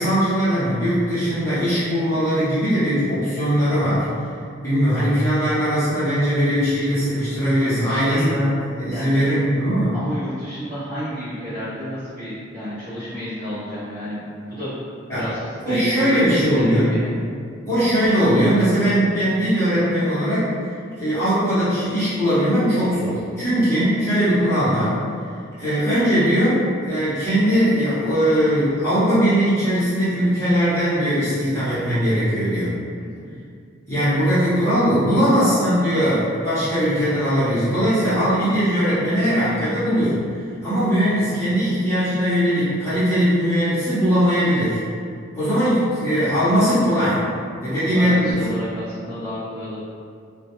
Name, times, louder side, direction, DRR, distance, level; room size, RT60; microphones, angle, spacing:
voice 1, 0.0-4.0 4.6-9.9 15.1-15.3 15.6-16.9 17.7-20.5 20.9-25.0 25.6-32.7 33.9-40.2 40.6-44.8 45.3-47.2 47.6-48.6, equal, 15° left, -15 dB, 0.8 m, -20 dB
voice 2, 7.8-8.4 8.9-9.3 9.9-14.7 15.1-15.4 15.6-17.1 33.0-33.3 35.1-35.4 41.0-41.3 47.6-49.8, equal, 40° right, -16 dB, 0.8 m, -31 dB
2.2 x 2.1 x 2.9 m, 2.3 s
head